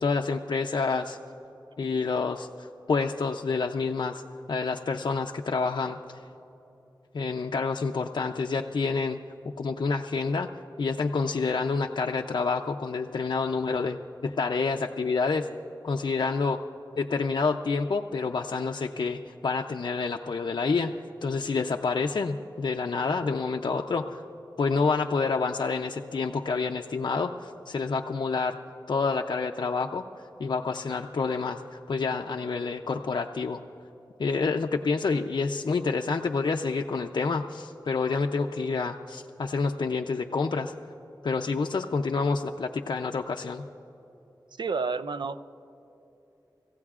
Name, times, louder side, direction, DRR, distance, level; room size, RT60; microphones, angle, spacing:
voice 1, 0.0-1.2 1.8-4.2 4.5-6.0 7.1-9.2 9.6-10.5 10.8-15.5 15.8-16.6 17.0-20.9 21.2-24.2 24.6-28.6 28.9-30.0 30.4-33.6 34.2-40.7 41.2-43.7, left 4 dB, 70° left, 2 dB, 0.5 m, -28 dB
voice 2, 44.6-45.5, right 4 dB, 70° right, 13 dB, 0.5 m, -30 dB
25.5 x 15.5 x 2.4 m, 2.9 s
wide cardioid pair, 60°, 8 cm